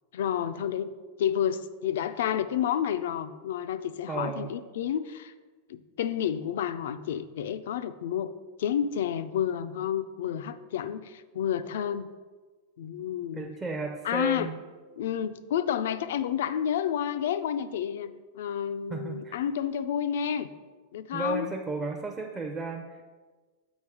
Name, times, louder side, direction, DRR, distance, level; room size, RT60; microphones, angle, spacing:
voice 1, 0.1-0.9 1.2-5.3 5.7-8.3 8.6-12.1 12.8-13.4 14.0-14.5 15.0-18.1 18.3-20.5 20.9-21.5, left 9 dB, 75° left, 13 dB, 0.4 m, -30 dB
voice 2, 4.1-4.5 13.3-14.6 18.9-19.4 21.1-23.0, right 2 dB, 15° right, 1 dB, 0.5 m, -33 dB
7.2 x 5.1 x 4.8 m, 1.4 s
supercardioid pair, 150°, 0 cm